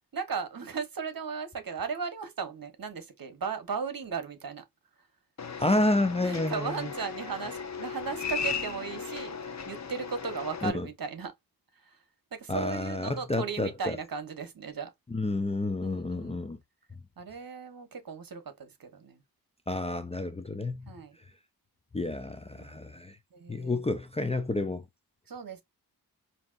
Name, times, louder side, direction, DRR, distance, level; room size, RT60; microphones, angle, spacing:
voice 1, 0.1-4.6 6.2-9.4 9.7-11.3 11.8-12.0 12.3-14.9 15.8-16.4 17.2-19.2 20.9-21.2 22.6-22.8 23.3-23.8 25.3-25.6, right 5 dB, 60° right, 1.2 m, -36 dB
sound 1, 5.4-10.7, left 5 dB, 45° left, 0.8 m, -36 dB
voice 2, 5.6-6.9 10.6-10.9 12.5-14.0 15.1-16.6 19.7-20.9 21.9-23.2 23.5-24.8, left 2 dB, 15° left, 0.5 m, -30 dB
5.2 x 2.8 x 2.5 m
cardioid pair, 70°, 39 cm